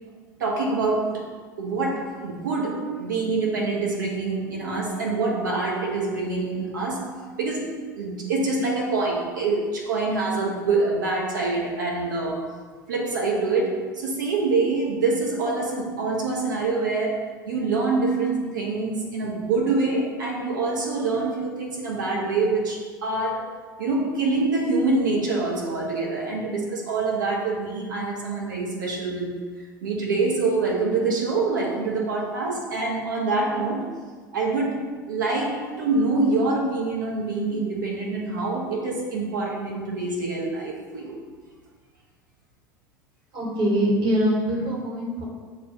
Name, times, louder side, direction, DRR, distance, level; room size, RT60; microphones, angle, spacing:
voice 1, 0.4-1.3 1.6-7.1 7.4-12.5 12.9-29.3 29.8-33.9 34.3-41.2, right 3 dB, 70° right, -2 dB, 0.9 m, -25 dB
voice 2, 43.3-45.2, right 1 dB, 45° right, -3 dB, 1.4 m, -23 dB
6.6 x 2.3 x 2.8 m, 1.5 s
figure-of-eight pair, 70°, 11 cm